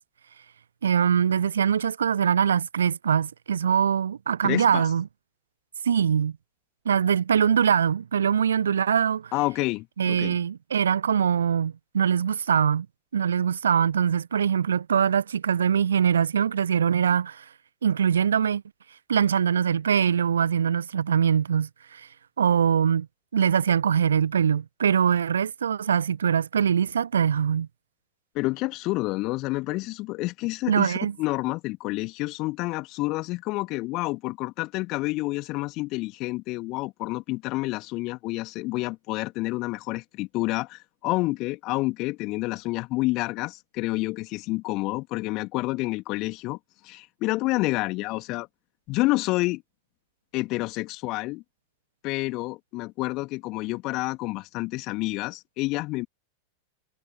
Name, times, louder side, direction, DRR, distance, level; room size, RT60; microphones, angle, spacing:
voice 1, 0.8-5.1 5.8-6.3 6.8-9.3 10.0-12.9 13.1-17.4 17.8-18.6 19.1-22.1 22.4-23.1 23.3-27.7 30.7-31.1, right 8 dB, 70° right, 0.8 m, -23 dB
voice 2, 4.4-4.8 9.3-10.4 28.3-46.6 46.8-48.5 48.9-49.6 50.3-51.4 52.0-56.1, left 21 dB, 40° left, 2.7 m, -29 dB
figure-of-eight pair, 90°, 0 cm